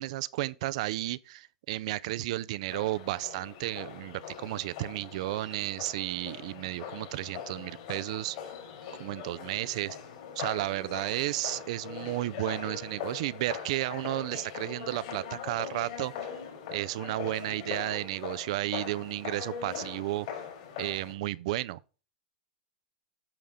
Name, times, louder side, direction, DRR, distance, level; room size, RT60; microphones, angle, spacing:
voice 1, 0.0-8.4 9.0-10.0 10.4-16.3 16.7-20.4 20.8-21.8, right 17 dB, 60° right, 0.4 m, -33 dB
sound 1, 2.7-21.1, left 7 dB, 60° left, 4.2 m, -41 dB
8.9 x 6.6 x 3.6 m
hypercardioid pair, 135°, 4 cm